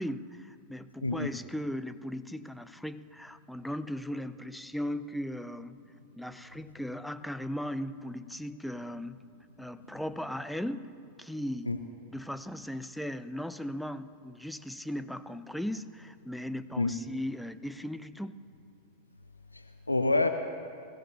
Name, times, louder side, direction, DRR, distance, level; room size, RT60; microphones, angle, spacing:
voice 1, 0.0-5.8 6.2-9.2 9.6-10.9 11.2-11.7 12.1-18.3, equal, ahead, 11 dB, 0.5 m, -37 dB
voice 2, 1.0-1.3 11.7-11.8 16.8-16.9 19.5-20.3, left 3 dB, 85° left, 7 dB, 0.5 m, -27 dB
21.0 x 16.0 x 3.0 m, 2.4 s
figure-of-eight pair, 90°, 0 cm